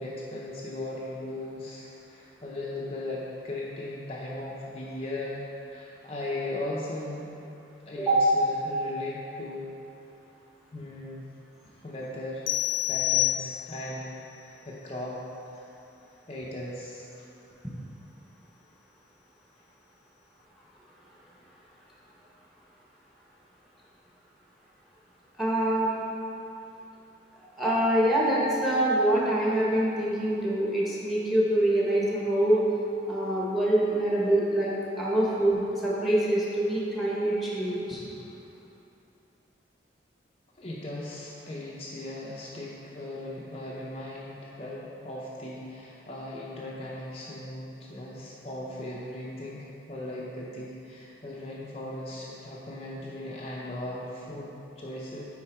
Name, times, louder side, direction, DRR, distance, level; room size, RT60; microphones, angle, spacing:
voice 1, 0.0-7.3 7.9-9.7 10.7-11.3 11.8-12.5 12.9-14.1 14.4-15.2 15.5-15.7 16.3-17.0 40.6-55.2, left 1 dB, 35° left, -5 dB, 0.6 m, -38 dB
sound 1, 12.5-14.0, left 16 dB, 85° left, 0.3 m, -27 dB
voice 2, 25.4-25.9 27.6-32.6 33.0-34.7 35.0-38.0, right 1 dB, ahead, -6 dB, 1.2 m, -25 dB
9.5 x 3.9 x 4.4 m, 2.8 s
head